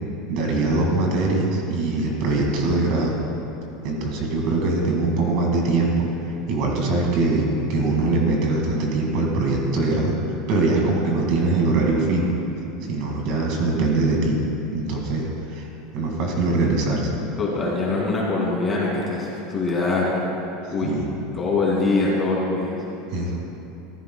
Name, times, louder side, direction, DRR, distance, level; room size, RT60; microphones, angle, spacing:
voice 1, 0.3-3.1 3.8-6.1 6.5-12.3 12.9-14.4 14.7-15.7 15.9-17.1 20.8-21.0 23.1-23.4, right 2 dB, 50° right, -1 dB, 2.2 m, -22 dB
voice 2, 17.4-20.1 20.7-21.0 21.3-22.8, left 3 dB, 15° left, -5 dB, 2.5 m, -23 dB
15.0 x 14.5 x 2.3 m, 2.9 s
supercardioid pair, 160°, 0 cm